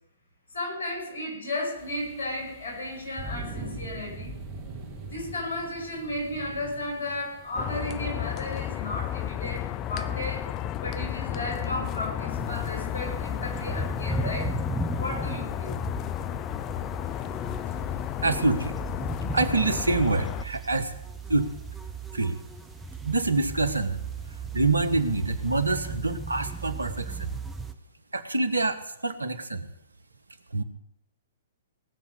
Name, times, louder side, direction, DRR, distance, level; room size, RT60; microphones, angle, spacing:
voice 1, 0.5-4.3 5.1-14.6 14.9-15.7, left 1 dB, 65° left, 1 dB, 5.7 m, -34 dB
sound 1, 1.8-18.8, right 2 dB, 25° right, 2.8 m, -44 dB
sound 2, 7.5-20.4, left 12 dB, 30° left, 0.5 m, -33 dB
sound 3, 12.3-27.7, right 3 dB, 5° right, 1.0 m, -37 dB
voice 2, 18.2-18.7 19.3-20.9 21.3-21.5 22.1-22.4 23.0-24.0 24.5-27.3 28.1-29.7 30.5-30.6, right 3 dB, 80° right, 11 dB, 1.2 m, -26 dB
18.0 x 7.0 x 6.8 m, 0.82 s
figure-of-eight pair, 120°, 0 cm